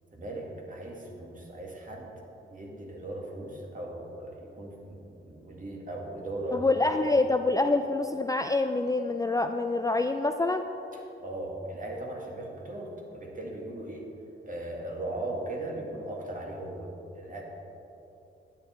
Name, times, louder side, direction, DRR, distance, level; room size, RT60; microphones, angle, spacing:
voice 1, 0.1-2.1 2.5-6.7 10.9-14.1 14.4-16.9 17.1-17.4, right 1 dB, 40° right, -1 dB, 2.0 m, -38 dB
voice 2, 6.5-10.6, left 2 dB, 15° left, 6 dB, 0.4 m, -26 dB
10.0 x 8.9 x 4.4 m, 2.9 s
cardioid pair, 75°, 21 cm